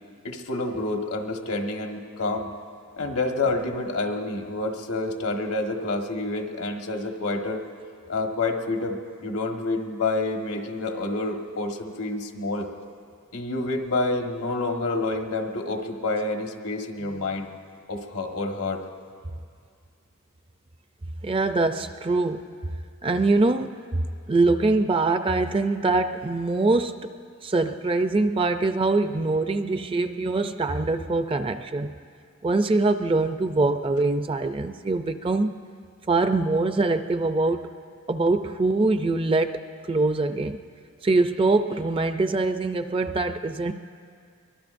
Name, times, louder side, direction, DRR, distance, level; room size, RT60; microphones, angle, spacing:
voice 1, 0.2-2.5 3.0-7.6 8.1-12.7 13.3-17.5 17.9-18.8, left 2 dB, 85° left, 3 dB, 1.4 m, -28 dB
voice 2, 21.2-22.5 23.0-24.0 24.3-27.1 27.4-31.9 32.4-35.5 36.1-37.7 38.1-40.6 41.0-43.7, right 3 dB, 25° right, 9 dB, 0.4 m, -23 dB
23.5 x 22.0 x 2.6 m, 2.2 s
head